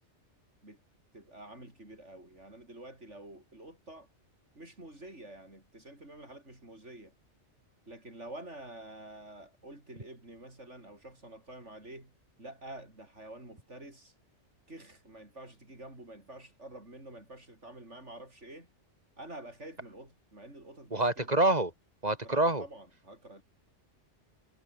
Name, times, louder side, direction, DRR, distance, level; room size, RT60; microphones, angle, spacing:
voice 1, 1.1-4.1 4.6-7.1 7.9-14.1 14.7-18.7 19.2-21.4 22.1-23.4, right 1 dB, 75° right, 7.7 m, -48 dB
voice 2, 20.9-21.7 22.0-22.6, right 2 dB, 35° right, 3.4 m, -26 dB
omnidirectional pair, 1.2 m